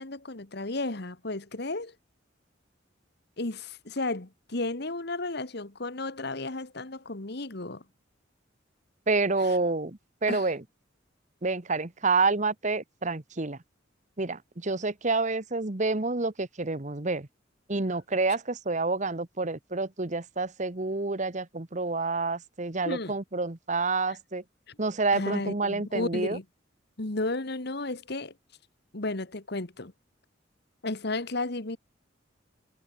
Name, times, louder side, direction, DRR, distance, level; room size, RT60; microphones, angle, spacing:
voice 1, 0.0-1.9 3.4-7.8 9.4-9.6 10.3-10.5 22.8-23.2 24.7-24.8 25.1-26.4 27.0-28.3 28.9-29.9 30.8-31.8, left 2 dB, 55° left, 1.7 m, -33 dB
voice 2, 9.1-10.6 11.4-13.6 14.2-17.3 17.7-24.4 24.8-26.4, right 3 dB, 40° right, 1.3 m, -28 dB
head